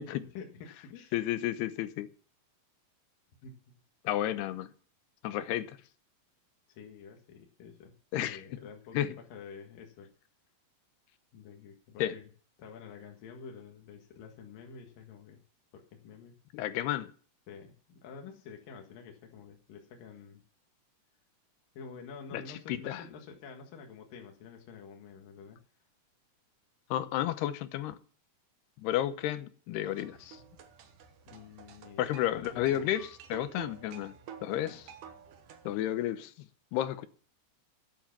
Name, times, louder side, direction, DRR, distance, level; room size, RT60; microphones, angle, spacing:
voice 1, 0.0-1.1 3.4-3.8 6.7-10.1 11.3-12.3 12.6-15.4 15.7-16.4 17.5-20.4 21.7-25.6 31.3-33.1 34.6-34.8, left 6 dB, 65° left, 3.2 m, -49 dB
voice 2, 1.1-2.1 4.0-4.7 5.2-5.8 8.1-8.4 8.9-9.2 12.0-12.2 16.5-17.1 22.3-23.0 26.9-28.0 28.8-30.4 32.0-34.2 34.4-34.8 35.7-36.3 36.7-37.1, left 12 dB, 85° left, 3.0 m, -32 dB
sound 1, 29.8-35.8, right 7 dB, 65° right, 2.5 m, -50 dB
12.0 x 9.5 x 5.9 m
omnidirectional pair, 4.6 m